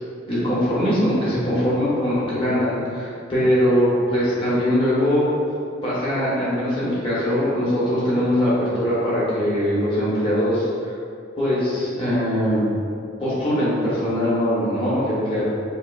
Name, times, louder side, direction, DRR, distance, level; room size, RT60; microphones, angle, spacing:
voice 1, 0.3-5.3 5.8-10.7 11.4-12.6 13.2-15.4, equal, 25° left, -10 dB, 1.1 m, -21 dB
4.8 x 2.4 x 2.3 m, 2.5 s
head